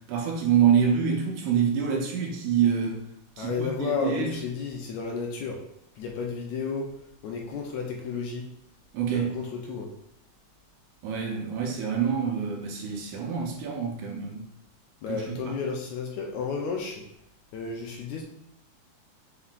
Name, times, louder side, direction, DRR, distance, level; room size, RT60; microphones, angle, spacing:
voice 1, 0.1-3.0 3.4-4.3 8.9-9.4 11.0-14.5 15.1-15.5, right 7 dB, 75° right, 1 dB, 2.0 m, -26 dB
voice 2, 3.4-5.6 6.0-6.9 7.2-8.5 9.1-9.9 15.0-17.1 17.5-18.2, left 5 dB, 80° left, 0 dB, 1.7 m, -32 dB
5.5 x 3.6 x 2.4 m, 0.75 s
omnidirectional pair, 3.7 m